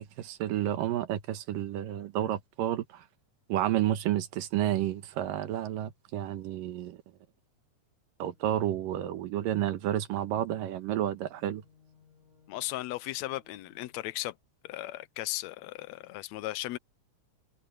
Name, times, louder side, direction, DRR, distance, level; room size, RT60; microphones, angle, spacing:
voice 1, 0.0-3.1 3.5-7.0 8.2-11.6, right 12 dB, 85° right, 2.9 m, -31 dB
sound 1, 8.2-14.2, left 5 dB, 60° right, 8.3 m, -64 dB
voice 2, 12.5-14.3 14.6-16.8, left 16 dB, 85° left, 1.5 m, -36 dB
omnidirectional pair, 3.8 m